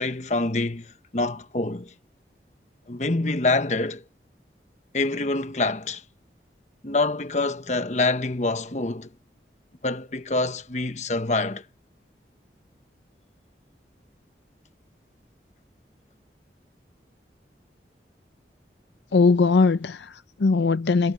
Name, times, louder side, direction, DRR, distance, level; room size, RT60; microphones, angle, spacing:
voice 1, 0.0-1.9 2.9-4.0 4.9-6.0 6.8-9.1 9.8-11.6, left 2 dB, 40° left, 1.1 m, -26 dB
voice 2, 19.1-21.1, left 4 dB, 85° left, 0.5 m, -20 dB
head